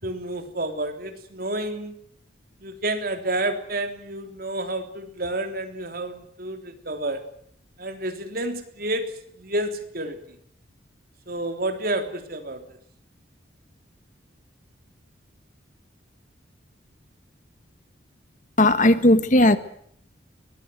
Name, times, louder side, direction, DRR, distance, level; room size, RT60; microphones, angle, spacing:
voice 1, 0.0-2.0 2.6-7.2 7.8-10.2 11.3-12.8, right 1 dB, 50° right, 7 dB, 3.5 m, -30 dB
voice 2, 18.6-19.6, left 1 dB, 40° left, 12 dB, 1.5 m, -16 dB
23.0 x 20.5 x 8.0 m, 0.65 s
head